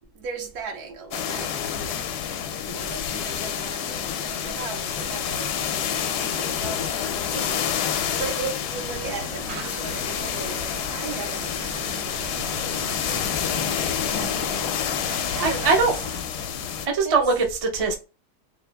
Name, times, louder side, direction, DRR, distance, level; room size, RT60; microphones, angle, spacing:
voice 1, 0.1-2.0 2.7-14.7 15.3-15.8 17.0-17.2, right 4 dB, 70° right, 1.3 m, -37 dB
sound 1, 1.1-16.9, left 8 dB, 75° left, 1.1 m, -28 dB
sound 2, 8.7-16.2, right 3 dB, 85° right, 1.4 m, -40 dB
voice 2, 14.1-14.5 15.1-15.9 16.8-18.0, right 4 dB, 35° right, 0.5 m, -23 dB
4.0 x 2.6 x 3.3 m
omnidirectional pair, 1.8 m